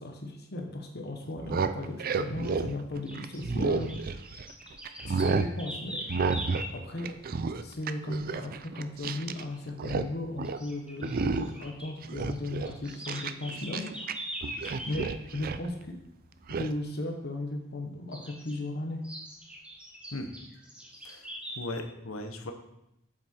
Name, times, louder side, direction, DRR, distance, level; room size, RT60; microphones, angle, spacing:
voice 1, 0.0-4.2 5.0-6.0 6.7-7.1 7.6-13.9 14.9-16.0 16.5-19.0, left 2 dB, 55° left, 3 dB, 1.2 m, -36 dB
sound 1, 1.3-4.5 4.9-5.5 6.1-6.7 7.0-9.4 9.7-10.1 10.4-10.6 11.0-11.6 12.0-14.1 14.4-15.7 16.5-16.7, right 4 dB, 45° right, 0.4 m, -31 dB
sound 2, 2.4-2.6 3.1-6.8 9.3-9.6 9.9-10.0 10.4-11.9 12.2-15.1 18.1-18.6 19.0-21.6, equal, 5° right, 1.7 m, -42 dB
voice 2, 21.5-22.5, left 2 dB, 90° left, 5 dB, 1.1 m, -37 dB
7.8 x 7.5 x 4.4 m, 0.84 s
head